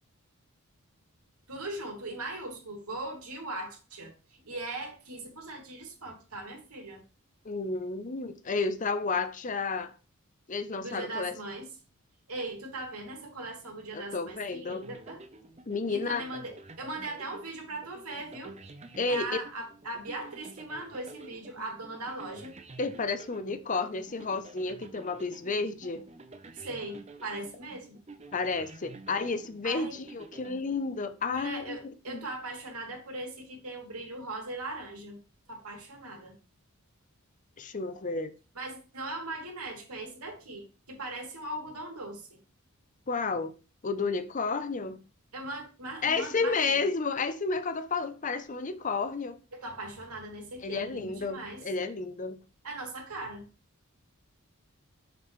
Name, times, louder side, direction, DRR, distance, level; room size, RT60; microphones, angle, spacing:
voice 1, 1.5-7.0 10.8-11.7 12.3-15.2 15.9-18.5 19.1-22.5 26.5-28.0 29.6-30.0 31.3-35.2 35.5-36.4 38.5-42.4 45.3-46.8 49.5-51.7 52.6-53.5, right 2 dB, 85° right, 2.8 m, -39 dB
voice 2, 7.4-9.9 10.5-11.3 13.9-14.8 15.7-16.2 19.0-19.4 22.8-26.1 28.3-32.3 37.6-38.3 43.1-43.5 43.8-45.0 46.0-49.4 50.6-52.4, left 4 dB, 35° left, 0.6 m, -31 dB
sound 1, 14.7-31.3, right 2 dB, 30° right, 0.7 m, -50 dB
6.8 x 6.7 x 3.1 m
head